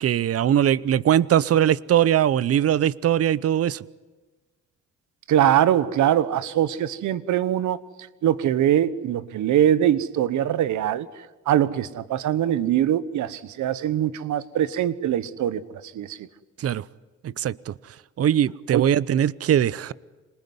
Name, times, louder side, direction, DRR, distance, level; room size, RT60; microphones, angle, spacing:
voice 1, 0.0-3.8 16.6-16.8 17.2-17.7 18.2-19.9, right 10 dB, 50° right, 21 dB, 0.7 m, -21 dB
voice 2, 5.3-7.8 8.2-11.1 11.5-15.6 15.9-16.2 18.7-18.8, right 11 dB, 75° right, 17 dB, 1.1 m, -22 dB
26.5 x 20.0 x 9.6 m, 1.3 s
cardioid pair, 90°, 30 cm